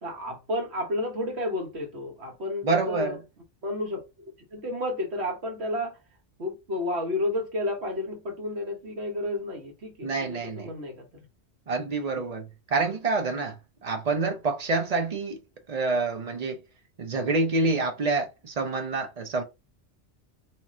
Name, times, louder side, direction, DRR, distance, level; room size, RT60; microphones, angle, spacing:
voice 1, 0.0-3.2 3.6-4.0 4.5-6.0 6.4-11.2 12.1-12.2, left 1 dB, 65° right, 1.4 m, -31 dB
voice 2, 2.6-3.2 10.0-10.7 11.7-15.4 15.7-16.6 17.0-19.4, right 3 dB, 45° right, 0.6 m, -27 dB
2.9 x 2.4 x 4.1 m
omnidirectional pair, 1.2 m